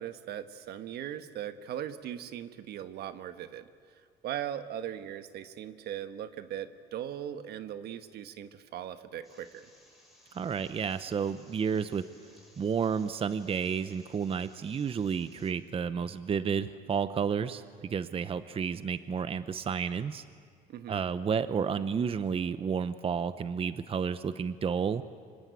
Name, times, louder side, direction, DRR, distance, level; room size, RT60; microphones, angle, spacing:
voice 1, 0.0-3.7 4.2-9.7 20.7-21.0, right 10 dB, 70° right, 10 dB, 1.4 m, -39 dB
sound 1, 9.2-15.5, left 1 dB, ahead, 6.9 m, -61 dB
voice 2, 10.3-12.0 12.6-20.2 20.9-25.0, right 6 dB, 35° right, 13 dB, 0.8 m, -31 dB
25.5 x 25.5 x 8.4 m, 2.1 s
cardioid pair, 110°, 17 cm